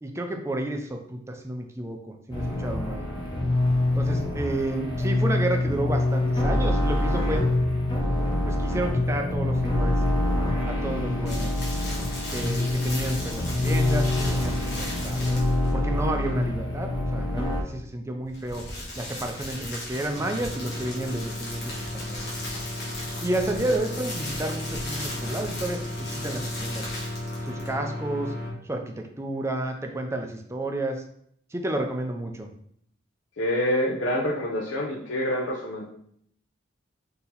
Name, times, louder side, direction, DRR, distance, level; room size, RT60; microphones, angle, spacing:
voice 1, 0.0-3.1 4.0-7.4 8.4-10.0 10.7-11.5 12.3-15.3 15.7-18.6 19.0-22.3 23.2-26.9 27.4-28.3 28.7-31.0 31.5-32.5, right 1 dB, 15° right, 3 dB, 0.4 m, -31 dB
sound 1, 2.3-17.6, left 1 dB, 25° left, 0.9 m, -25 dB
sound 2, 11.2-15.7 18.2-27.8, left 1 dB, 60° left, 1.4 m, -37 dB
sound 3, 20.1-28.5, left 1 dB, 50° right, 1.0 m, -35 dB
voice 2, 33.4-35.8, left 1 dB, 75° left, -4 dB, 0.6 m, -26 dB
4.1 x 2.9 x 4.0 m, 0.67 s
head